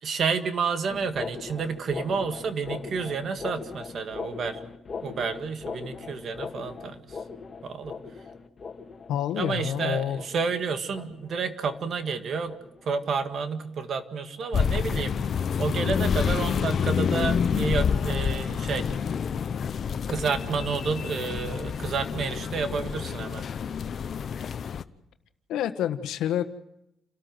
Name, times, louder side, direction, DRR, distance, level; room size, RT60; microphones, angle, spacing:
voice 1, 0.0-4.6 5.0-7.2 7.6-7.9 9.4-12.6 12.8-15.2 15.6-18.9 20.1-23.4, right 5 dB, 60° right, 8 dB, 2.0 m, -30 dB
sound 1, 0.9-13.7 14.0-14.3 14.7-15.0 15.4-15.6 16.2-16.3 17.0-17.1, left 5 dB, 40° left, 2.2 m, -40 dB
voice 2, 9.1-10.2 25.5-26.4, left 10 dB, 85° left, 9 dB, 1.4 m, -28 dB
sound 2, 14.5-24.8, left 7 dB, 55° left, 0.9 m, -28 dB
29.5 x 13.0 x 7.8 m, 0.85 s
cardioid pair, 90°, 0 cm